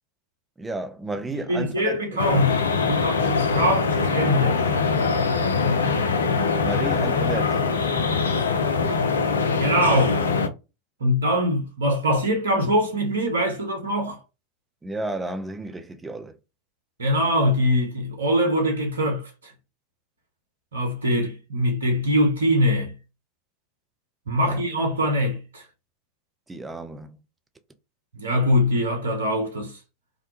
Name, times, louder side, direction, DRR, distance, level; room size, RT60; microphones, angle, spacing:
voice 1, 0.6-2.2 6.6-7.6 14.8-16.4 24.4-24.6 26.5-27.2, right 2 dB, 15° right, 0.4 m, -32 dB
voice 2, 1.3-4.6 9.6-10.2 11.0-14.2 17.0-19.5 20.7-22.9 24.3-25.6 28.1-29.8, equal, 75° right, 0.7 m, -23 dB
sound 1, 2.2-10.5, left 5 dB, 80° left, 0.4 m, -23 dB
2.5 x 2.2 x 2.8 m
figure-of-eight pair, 85°, 0 cm